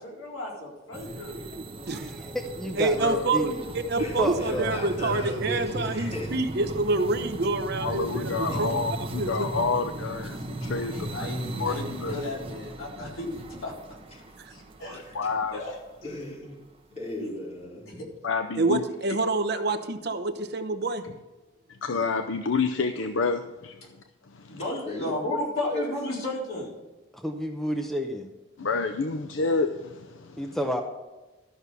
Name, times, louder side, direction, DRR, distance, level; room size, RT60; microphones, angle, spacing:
voice 1, 0.0-1.4 8.5-8.6 10.9-13.7 14.5-15.0 15.5-15.8 17.2-17.3 17.9-18.1 24.5-26.7, left 1 dB, 90° left, -3 dB, 4.0 m, -34 dB
sound 1, 0.9-16.2, right 1 dB, 30° right, 1.0 m, -37 dB
voice 2, 1.9-3.6 4.2-4.8 27.1-28.3 30.4-30.8, equal, ahead, 4 dB, 0.7 m, -30 dB
voice 3, 2.8-9.5 14.4-14.5 18.6-21.1, right 2 dB, 55° right, 9 dB, 0.8 m, -27 dB
voice 4, 4.0-6.3 15.0-15.3 16.0-16.6 17.0-17.8 24.8-25.1 25.6-25.8, left 1 dB, 30° left, -5 dB, 3.8 m, -36 dB
voice 5, 7.8-11.1 11.6-12.2 15.1-15.6 18.2-18.8 21.8-23.8 24.3-24.6 28.6-30.6, left 4 dB, 70° left, 6 dB, 0.6 m, -29 dB
13.0 x 6.2 x 6.8 m, 1.1 s
head